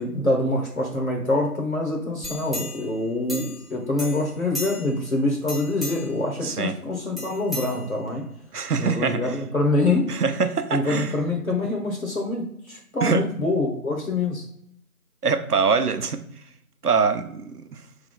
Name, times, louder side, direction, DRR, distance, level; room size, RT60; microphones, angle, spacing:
voice 1, 0.0-8.2 8.8-10.2 10.7-14.4, left 2 dB, 65° left, 1.2 m, -25 dB
sound 1, 2.2-3.7 4.0-5.0 5.4-6.2 7.2-8.3 8.7-8.8, left 1 dB, ahead, 0.5 m, -35 dB
voice 2, 6.4-6.7 8.5-9.3 10.1-11.2 13.0-13.2 15.2-16.2 16.8-17.6, right 5 dB, 85° right, 0.7 m, -23 dB
3.9 x 3.6 x 3.7 m
figure-of-eight pair, 165°, 45 cm